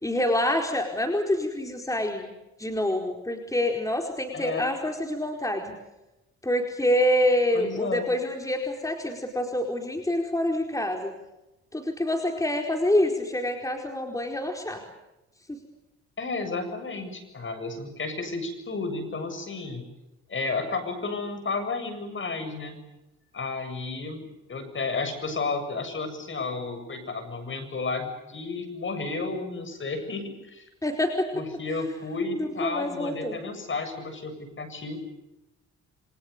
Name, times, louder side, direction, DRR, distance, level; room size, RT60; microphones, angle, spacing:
voice 1, 0.0-2.3 2.6-5.7 6.4-11.1 11.7-14.8 15.5-15.6 30.8-31.3 32.3-33.4, left 1 dB, 10° left, 3 dB, 4.6 m, -26 dB
voice 2, 4.3-4.6 7.5-8.1 16.2-19.8 20.3-22.8 23.3-30.6 31.3-35.0, left 3 dB, 40° left, 9 dB, 7.6 m, -32 dB
28.5 x 25.5 x 6.9 m, 0.96 s
cardioid pair, 90°, 30 cm